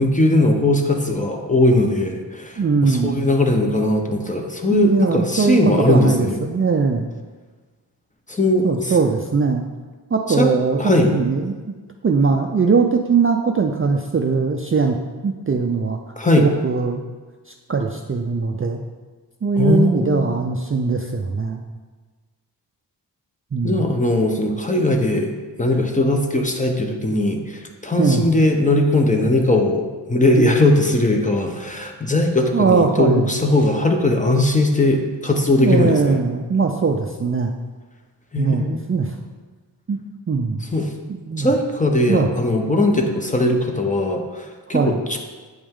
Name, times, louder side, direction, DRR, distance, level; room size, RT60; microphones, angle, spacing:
voice 1, 0.0-6.4 8.3-8.9 10.3-10.5 10.8-11.1 16.2-16.5 19.6-20.4 23.6-36.2 38.3-38.8 40.7-40.9 41.4-45.2, left 2 dB, 15° left, 2 dB, 0.8 m, -19 dB
voice 2, 2.6-3.2 4.7-7.1 8.6-9.6 10.1-10.8 11.1-11.6 12.0-15.0 15.2-16.0 16.4-17.0 17.7-18.8 19.4-21.6 23.5-23.9 28.0-28.2 32.5-33.4 35.6-37.5 38.4-39.2 39.9-40.0 40.3-40.6 41.1-41.5 42.1-42.3 44.7-45.0, right 4 dB, 30° right, 3 dB, 0.4 m, -20 dB
7.9 x 5.1 x 3.7 m, 1.3 s
wide cardioid pair, 85°, 43 cm